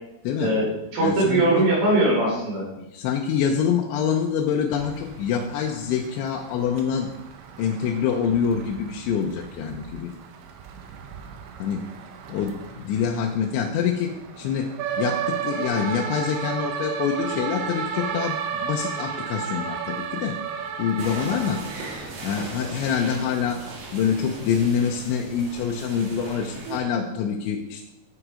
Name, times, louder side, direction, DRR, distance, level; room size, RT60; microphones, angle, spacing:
voice 1, 0.4-2.6, right 2 dB, 35° right, -5 dB, 4.5 m, -21 dB
voice 2, 1.0-1.7 2.8-7.1 7.6-10.1 11.6-11.8 12.3-14.1 14.4-14.7 15.0-20.4 20.8-21.6 22.2-23.6 23.9-27.8, left 7 dB, 85° left, 1 dB, 3.1 m, -26 dB
Thunder Rain Firetrucks, 4.7-22.5, right 7 dB, 80° right, 3.2 m, -34 dB
sound 1, 21.0-26.8, right 3 dB, 55° right, 2.8 m, -38 dB
9.9 x 8.0 x 5.0 m, 0.94 s
omnidirectional pair, 5.2 m